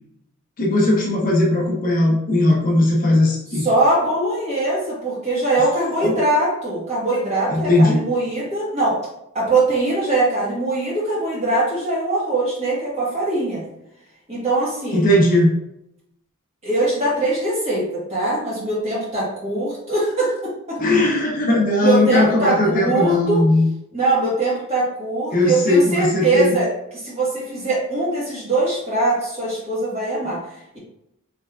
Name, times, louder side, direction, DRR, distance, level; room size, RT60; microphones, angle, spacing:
voice 1, 0.6-3.7 6.0-6.1 7.5-8.0 14.9-15.5 20.8-23.7 25.3-26.5, left 1 dB, 40° left, -1 dB, 0.5 m, -18 dB
voice 2, 3.5-9.0 9.3-13.6 14.3-15.0 16.6-20.8 21.8-23.5 23.9-26.7 26.9-30.4, right 2 dB, 30° right, -6 dB, 1.2 m, -22 dB
3.3 x 3.2 x 2.3 m, 0.83 s
head